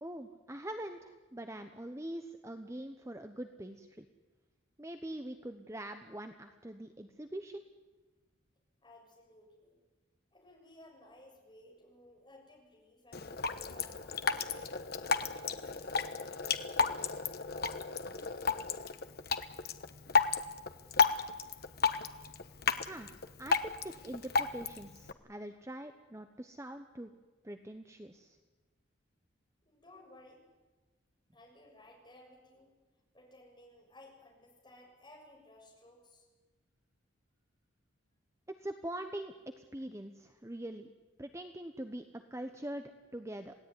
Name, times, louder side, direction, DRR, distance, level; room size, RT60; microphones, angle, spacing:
voice 1, 0.0-4.1 4.8-7.6 22.9-23.1 23.4-27.1 27.4-28.4 38.5-40.9 41.2-42.8 43.1-43.5, right 1 dB, 15° right, 7 dB, 0.9 m, -43 dB
voice 2, 8.8-9.8 10.3-15.8 29.7-30.4 31.3-32.7 33.1-36.3, left 1 dB, 20° left, -1 dB, 7.0 m, -58 dB
Drip, 13.1-25.1, left 5 dB, 50° left, 1.2 m, -33 dB
27.0 x 17.5 x 9.7 m, 1.3 s
head